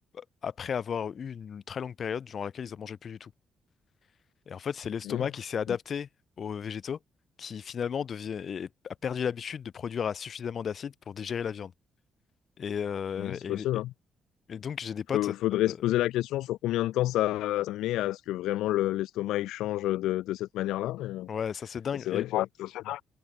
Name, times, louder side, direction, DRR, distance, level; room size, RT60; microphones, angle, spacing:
voice 1, 0.1-3.3 4.5-6.1 6.4-7.0 7.4-11.7 12.6-13.8 14.5-15.8 21.3-22.3, left 7 dB, 50° left, 2.3 m, -34 dB
voice 2, 13.2-13.9 15.1-21.3 21.9-23.0, left 15 dB, 90° left, 1.0 m, -29 dB
cardioid pair, 90°, 0 cm